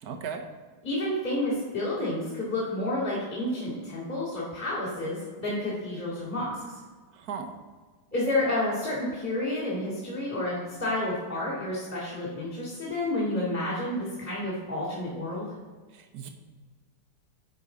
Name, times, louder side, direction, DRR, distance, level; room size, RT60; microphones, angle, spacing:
voice 1, 0.0-0.5 7.1-7.5 15.9-16.3, right 6 dB, 65° right, 4 dB, 1.3 m, -37 dB
voice 2, 0.8-6.6 8.1-15.5, left 1 dB, 10° left, -10 dB, 2.0 m, -30 dB
9.6 x 5.1 x 3.8 m, 1.4 s
omnidirectional pair, 2.0 m